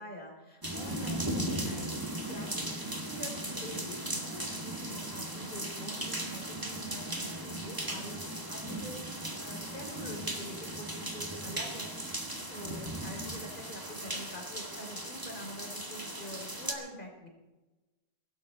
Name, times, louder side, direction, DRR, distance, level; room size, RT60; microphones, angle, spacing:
voice 1, 0.0-1.9 2.2-11.9 12.2-17.3, equal, 50° left, 2 dB, 3.7 m, -45 dB
sound 1, 0.6-16.7, right 1 dB, 20° right, 2.0 m, -37 dB
22.0 x 12.5 x 4.2 m, 1.1 s
omnidirectional pair, 1.1 m